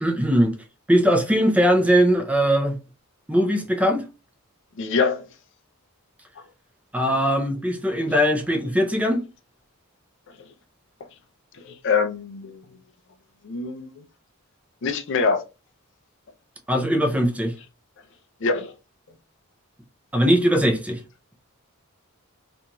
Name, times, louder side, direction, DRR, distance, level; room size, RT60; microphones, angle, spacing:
voice 1, 0.0-0.5 0.9-2.8 3.3-4.0 6.9-9.2 16.7-17.5 20.1-21.0, equal, 5° right, 0.4 m, -20 dB
voice 2, 4.8-5.2 11.7-12.6 13.4-13.9 14.8-15.4 18.4-18.7, left 5 dB, 60° left, 0.5 m, -24 dB
2.8 x 2.6 x 2.2 m
head